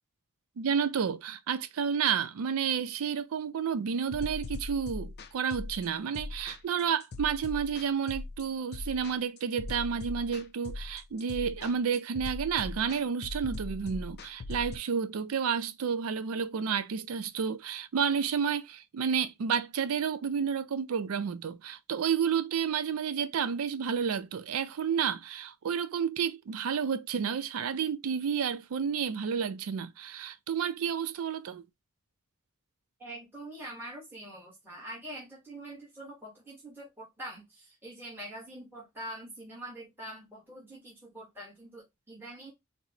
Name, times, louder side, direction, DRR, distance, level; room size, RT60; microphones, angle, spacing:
voice 1, 0.6-31.7, right 7 dB, 80° right, 0.4 m, -31 dB
sound 1, 4.1-14.8, left 2 dB, 50° left, 0.4 m, -40 dB
voice 2, 33.0-42.5, right 1 dB, 10° right, 1.1 m, -44 dB
4.1 x 2.0 x 2.7 m
head